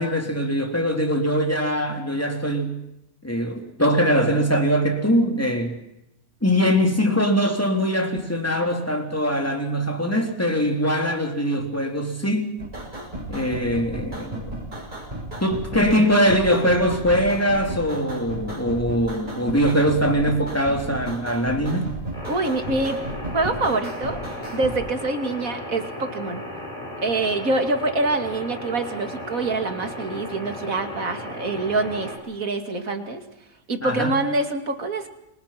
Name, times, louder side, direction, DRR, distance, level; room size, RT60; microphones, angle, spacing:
voice 1, 0.0-2.8 3.2-5.8 6.4-12.5 13.3-14.5 15.4-21.9 33.8-34.1, equal, 10° left, 3.6 m, -22 dB
sound 1, 12.6-24.8, right 1 dB, 35° right, 8.1 m, -34 dB
sound 2, 22.1-32.2, left 1 dB, 25° left, 7.1 m, -35 dB
voice 2, 22.3-23.0 23.3-24.2 24.5-26.4 27.0-33.2 33.7-35.1, right 2 dB, 75° right, 2.9 m, -25 dB
29.0 x 23.5 x 6.0 m
omnidirectional pair, 1.5 m